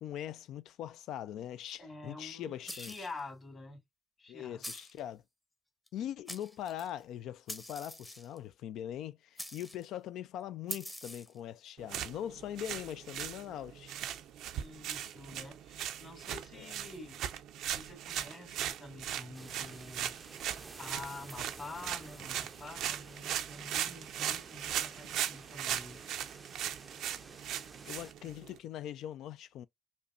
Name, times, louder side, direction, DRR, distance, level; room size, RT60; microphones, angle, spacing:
voice 1, 0.0-2.9 4.3-5.2 5.9-14.0 16.5-16.7 27.8-29.7, left 11 dB, 85° left, 0.3 m, -41 dB
voice 2, 1.8-3.8 4.2-4.6 14.5-17.2 17.7-26.0, left 2 dB, 40° left, 2.2 m, -48 dB
sound 1, 2.7-3.2 4.6-5.0 5.9-6.0 6.3-6.9 7.5-8.4 9.4-9.9 10.7-11.4, left 1 dB, 10° left, 0.8 m, -44 dB
sound 2, 11.8-28.6, right 11 dB, 90° right, 0.4 m, -39 dB
sound 3, 19.3-28.1, right 3 dB, 25° right, 0.4 m, -52 dB
5.1 x 2.1 x 2.4 m
cardioid pair, 100°, 0 cm